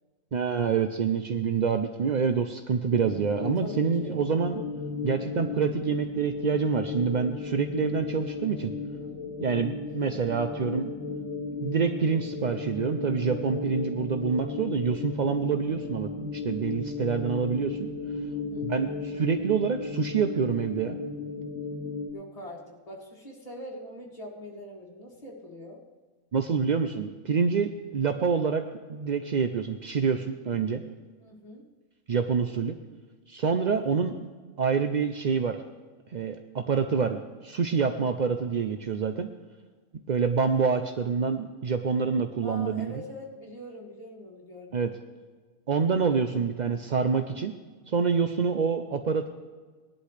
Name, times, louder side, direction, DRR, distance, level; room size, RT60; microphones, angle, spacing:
voice 1, 0.3-4.6 5.0-8.7 9.4-10.9 11.6-17.9 18.6-21.0 26.3-30.8 32.1-32.8 33.3-34.1 34.6-35.6 36.1-39.3 40.1-42.9 44.7-44.9 45.7-47.5 47.9-49.3, right 6 dB, 65° right, 7 dB, 0.4 m, -27 dB
sound 1, 2.9-22.1, left 4 dB, 65° left, 1.3 m, -35 dB
voice 2, 3.6-4.2 18.3-18.7 22.1-25.8 31.2-31.7 33.7-34.0 42.4-44.9, left 1 dB, 25° left, -4 dB, 2.2 m, -43 dB
18.0 x 11.5 x 3.3 m, 1.4 s
omnidirectional pair, 1.5 m